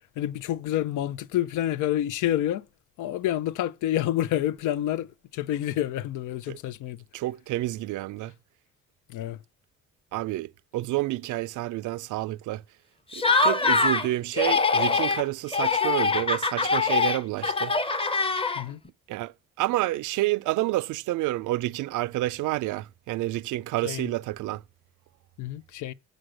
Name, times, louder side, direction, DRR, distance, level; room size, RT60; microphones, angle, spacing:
voice 1, 0.2-2.7 3.0-7.0 9.1-9.4 18.5-18.8 23.8-24.1 25.4-25.9, left 12 dB, 85° left, 0.6 m, -28 dB
voice 2, 7.1-8.3 10.1-12.6 13.1-17.8 19.1-24.6, right 17 dB, 85° right, 0.5 m, -29 dB
Laughter, 13.1-14.1 14.3-15.2 15.5-18.9, left 4 dB, 20° left, 0.7 m, -23 dB
7.7 x 6.3 x 6.4 m
cardioid pair, 90°, 30 cm